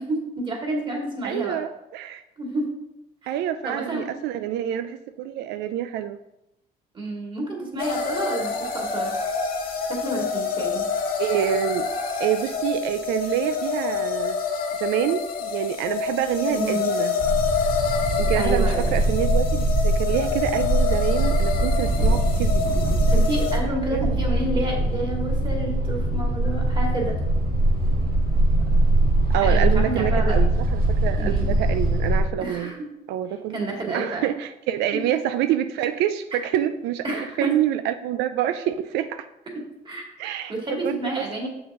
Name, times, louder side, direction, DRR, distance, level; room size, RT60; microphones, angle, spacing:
voice 1, 0.0-1.6 2.4-2.7 3.2-3.3 3.6-4.1 6.9-9.1 9.9-10.8 16.5-16.9 18.3-18.9 23.1-27.2 29.3-30.4 31.2-31.5 32.4-32.8 33.5-34.3 34.9-35.0 37.0-37.5 39.8-40.0 40.5-41.5, right 1 dB, 30° right, -1 dB, 2.3 m, -29 dB
voice 2, 1.2-2.2 3.3-6.2 11.2-11.9 12.2-14.4 14.8-17.1 18.2-23.1 23.9-24.2 29.3-32.7 33.1-33.6 33.9-37.0 37.4-39.3 40.2-40.5 40.8-41.5, right 11 dB, 90° right, 10 dB, 0.4 m, -27 dB
sound 1, 7.8-23.6, left 5 dB, 60° left, 1.5 m, -27 dB
sound 2, 17.2-32.2, right 1 dB, 60° right, 1.7 m, -22 dB
7.1 x 6.0 x 3.6 m, 0.88 s
cardioid pair, 110°, 17 cm